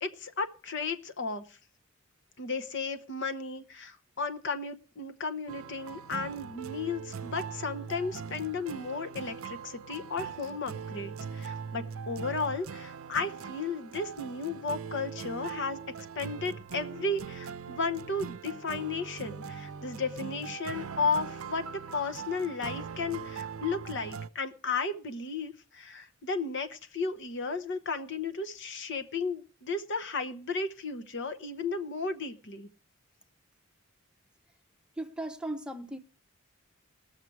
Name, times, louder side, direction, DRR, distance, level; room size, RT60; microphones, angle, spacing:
voice 1, 0.0-1.6 2.4-15.8 16.1-21.7 21.9-32.7, left 4 dB, 60° left, 0.9 m, -34 dB
sound 1, 5.5-24.3, right 6 dB, 80° right, 0.6 m, -41 dB
voice 2, 34.9-36.0, right 1 dB, 5° right, 0.8 m, -37 dB
20.0 x 6.6 x 4.7 m
head